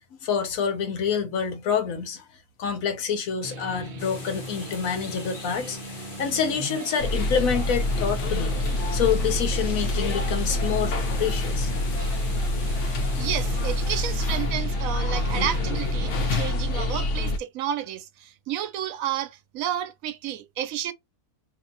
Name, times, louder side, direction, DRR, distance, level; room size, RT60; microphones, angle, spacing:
voice 1, 0.1-2.2 2.6-8.6 8.9-11.7, left 7 dB, 80° left, 1.2 m, -27 dB
sound 1, 3.4-16.5, right 1 dB, 45° right, 0.7 m, -39 dB
sound 2, 4.0-14.3, left 4 dB, 45° left, 0.9 m, -42 dB
sound 3, 7.0-17.4, left 2 dB, 65° left, 1.0 m, -26 dB
voice 2, 13.1-20.9, right 10 dB, 80° right, 1.0 m, -31 dB
2.9 x 2.5 x 3.7 m
omnidirectional pair, 1.4 m